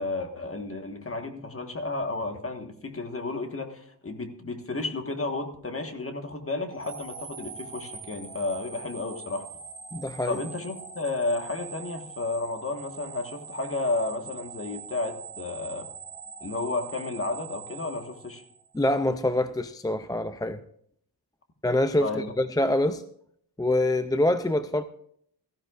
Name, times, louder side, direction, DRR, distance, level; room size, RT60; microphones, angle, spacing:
voice 1, 0.0-9.5 10.2-15.9 16.4-18.4 22.0-22.3, left 2 dB, 35° left, 1.5 m, -32 dB
sound 1, 6.7-18.9, right 5 dB, 70° right, 1.9 m, -43 dB
voice 2, 9.9-10.4 18.7-20.6 21.6-23.0 23.6-24.8, left 1 dB, 10° left, 0.4 m, -25 dB
17.0 x 14.5 x 2.5 m
wide cardioid pair, 130°, 40 cm